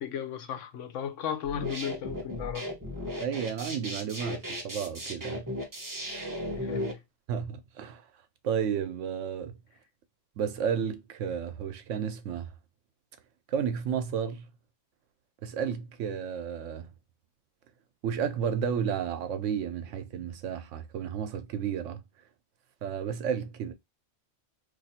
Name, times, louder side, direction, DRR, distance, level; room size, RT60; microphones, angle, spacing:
voice 1, 0.0-2.7 6.6-7.0, left 8 dB, 75° left, 1.0 m, -35 dB
sound 1, 1.4-6.9, equal, 20° right, 0.7 m, -36 dB
voice 2, 3.2-5.5 5.9-6.1 7.3-8.0 8.4-9.6 10.4-12.5 13.5-14.5 15.4-16.9 18.0-22.0 22.8-23.7, right 7 dB, 80° right, 1.0 m, -32 dB
2.6 x 2.5 x 4.1 m
omnidirectional pair, 1.3 m